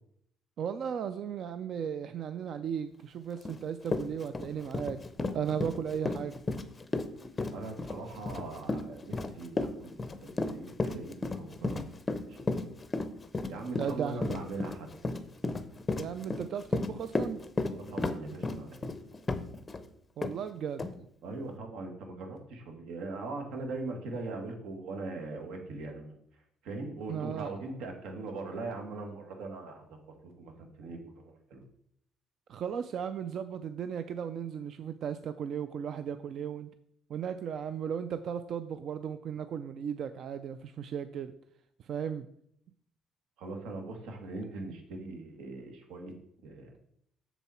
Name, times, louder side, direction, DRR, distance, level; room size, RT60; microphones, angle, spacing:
voice 1, 0.6-6.4 13.8-14.3 16.0-17.4 20.2-20.9 27.1-27.5 32.5-36.7 37.1-41.3 41.8-42.3, right 8 dB, 45° right, 11 dB, 0.4 m, -36 dB
Run, 3.4-3.6 3.9-19.8 20.2-20.3 20.8-20.9, left 3 dB, 15° left, 0.6 m, -33 dB
voice 2, 7.5-12.0 12.3-12.6 13.5-14.9 17.6-18.9 21.2-26.2 26.6-30.0 30.2-31.6 43.4-46.1 46.4-46.8, right 3 dB, 80° right, 3 dB, 2.0 m, -41 dB
7.1 x 7.0 x 4.3 m, 0.68 s
cardioid pair, 170°, 0 cm